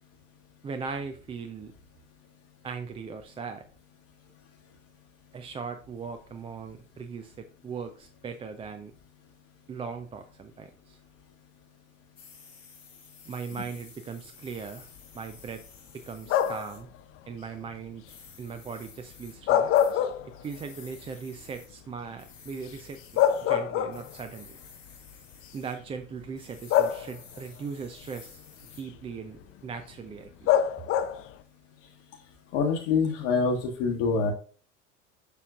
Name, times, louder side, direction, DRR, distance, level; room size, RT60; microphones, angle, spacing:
voice 1, 0.6-1.7 2.6-3.7 5.3-8.9 9.7-11.0 13.3-14.9 15.1-15.6 15.9-16.9 17.3-18.1 18.4-24.6 25.5-28.5 28.8-30.5 30.8-30.9, right 5 dB, 15° right, 7 dB, 0.4 m, -39 dB
sound 1, 12.2-16.8 18.1-19.4 19.7-19.9 20.4-21.7 22.2-23.5 23.9-25.8 26.4-28.8, left 5 dB, 85° left, 1.7 m, -52 dB
sound 2, 16.3-16.8 19.3-20.7 21.1-21.2 22.7-22.8 23.2-24.3 25.3-25.4 26.7-27.4 30.5-31.3, left 10 dB, 35° left, 0.5 m, -25 dB
voice 2, 32.5-34.3, left 5 dB, 55° left, 0 dB, 1.2 m, -25 dB
6.9 x 5.6 x 2.4 m, 0.41 s
hypercardioid pair, 80°, 37 cm